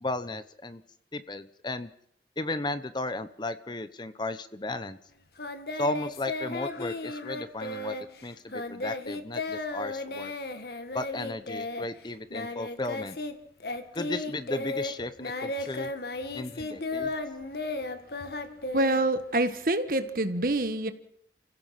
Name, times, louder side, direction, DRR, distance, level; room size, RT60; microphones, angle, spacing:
voice 1, 0.0-0.8 1.1-1.9 2.4-5.0 5.8-7.9 8.2-10.3 10.9-13.2 13.9-15.9 16.3-17.1, left 2 dB, 25° left, 12 dB, 0.9 m, -34 dB
Singing, 5.4-13.3 13.6-19.5, left 2 dB, 60° left, 1.8 m, -35 dB
voice 2, 18.7-20.9, right 2 dB, 50° right, 10 dB, 1.5 m, -26 dB
29.5 x 16.5 x 5.9 m, 0.72 s
head